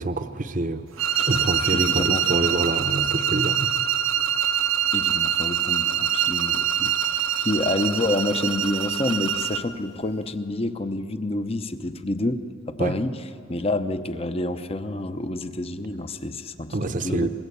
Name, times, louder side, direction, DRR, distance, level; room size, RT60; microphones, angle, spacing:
voice 1, 0.0-3.7 12.8-13.0 16.7-17.3, right 2 dB, 40° right, 9 dB, 0.8 m, -27 dB
sound 1, 1.0-9.7, right 9 dB, 75° right, 0.9 m, -24 dB
voice 2, 1.7-2.7 4.9-13.1 13.5-16.7 17.0-17.3, left 2 dB, 30° left, 10 dB, 0.9 m, -28 dB
26.0 x 21.5 x 8.5 m, 2.6 s
head